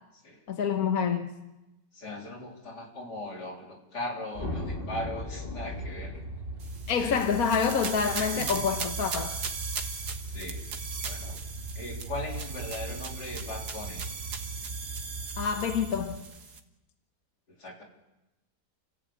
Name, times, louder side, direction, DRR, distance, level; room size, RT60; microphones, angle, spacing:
voice 1, 0.5-1.3 6.9-9.4 15.4-16.2, left 6 dB, 65° left, 1.6 m, -27 dB
voice 2, 1.9-6.2 7.0-7.2 8.1-8.8 10.2-10.6 11.0-11.4 11.7-14.0 17.5-17.8, left 1 dB, 90° left, 4.2 m, -39 dB
sound 1, 4.3-8.7, left 1 dB, 35° left, 2.5 m, -38 dB
sound 2, 5.7-16.2, right 2 dB, 40° right, 1.2 m, -40 dB
sound 3, 6.6-16.6, right 5 dB, 80° right, 2.1 m, -38 dB
29.5 x 15.0 x 8.6 m
omnidirectional pair, 1.7 m